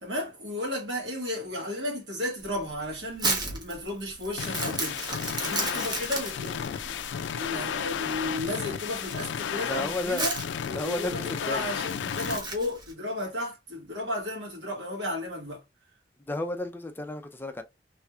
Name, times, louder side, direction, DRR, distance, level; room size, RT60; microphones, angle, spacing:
voice 1, 0.0-5.0 5.4-10.4 10.7-15.6, left 1 dB, 75° right, 1.6 m, -34 dB
Crumpling crinkling, 2.4-12.9, right 3 dB, 25° right, 0.8 m, -34 dB
sound 1, 4.4-12.4, left 8 dB, 85° left, 0.4 m, -33 dB
voice 2, 9.7-10.3 10.7-11.7 16.3-17.6, left 2 dB, 10° left, 0.5 m, -32 dB
3.2 x 3.0 x 2.3 m
head